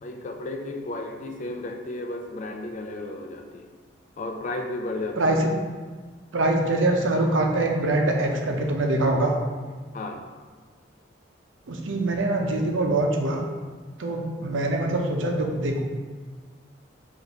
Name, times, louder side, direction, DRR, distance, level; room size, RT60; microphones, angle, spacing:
voice 1, 0.0-3.7 4.2-5.5 9.9-10.3, left 2 dB, 40° left, 4 dB, 0.4 m, -33 dB
voice 2, 5.2-5.5 6.3-9.4 11.7-13.4 14.0-15.8, right 2 dB, 90° right, 2 dB, 0.6 m, -24 dB
4.0 x 2.6 x 4.5 m, 1.5 s
head